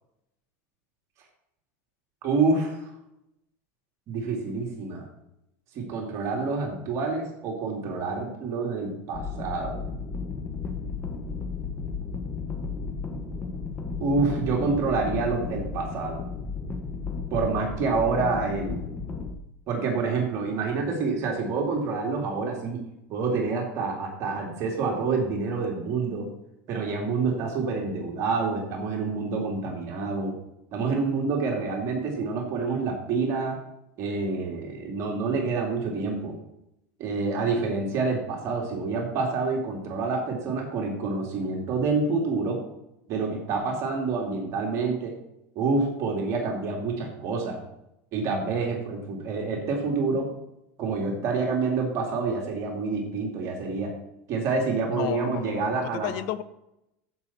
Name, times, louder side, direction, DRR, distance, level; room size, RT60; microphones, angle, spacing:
voice 1, 2.2-2.8 4.1-5.1 5.7-9.8 14.0-16.2 17.3-18.8 19.7-22.8 23.1-26.3 26.7-30.3 30.7-33.6 34.0-36.3 37.0-42.6 43.1-45.2 45.6-47.6 48.1-50.3 50.8-53.9 54.3-56.1, right 4 dB, 45° right, 0 dB, 2.4 m, -27 dB
sound 1, 9.1-19.3, left 4 dB, 20° left, 1.2 m, -33 dB
voice 2, 54.9-56.4, left 11 dB, 60° left, 14 dB, 0.7 m, -32 dB
14.0 x 5.7 x 4.2 m, 0.84 s
supercardioid pair, 140°, 7 cm